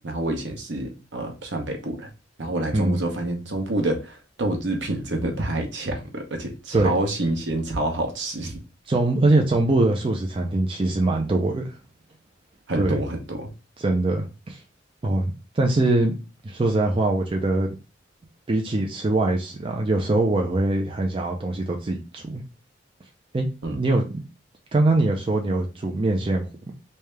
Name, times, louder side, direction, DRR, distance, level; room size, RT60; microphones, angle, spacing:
voice 1, 0.0-2.1 2.4-8.6 12.7-13.5 23.6-23.8, right 1 dB, 65° right, 0.9 m, -27 dB
voice 2, 8.9-11.8 12.8-13.0 13.8-14.6 15.0-16.1 16.4-17.7 18.5-22.4 23.3-24.2 24.7-26.7, right 2 dB, 30° right, 0.4 m, -23 dB
3.3 x 2.7 x 3.3 m
head